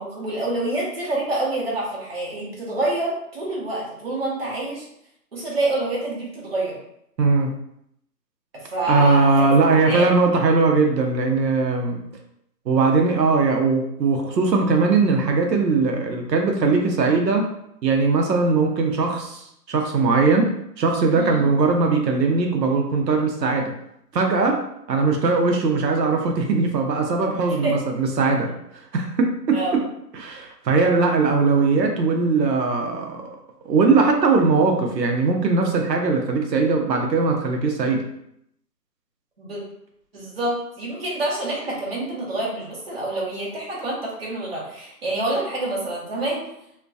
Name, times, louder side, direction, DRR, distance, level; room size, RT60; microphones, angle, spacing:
voice 1, 0.0-4.8 5.3-6.8 8.5-9.5 9.8-10.1 21.1-21.5 27.5-27.8 29.5-29.8 39.4-39.6 40.1-46.5, right 2 dB, 35° right, -5 dB, 0.7 m, -27 dB
voice 2, 7.2-7.5 8.9-12.0 12.7-17.5 17.8-20.5 20.8-23.7 24.1-24.6 24.9-28.5 28.9-29.6 30.1-33.3 33.6-38.1, right 4 dB, 80° right, 2 dB, 0.6 m, -20 dB
2.5 x 2.2 x 2.2 m, 0.75 s
figure-of-eight pair, 160°, 50 cm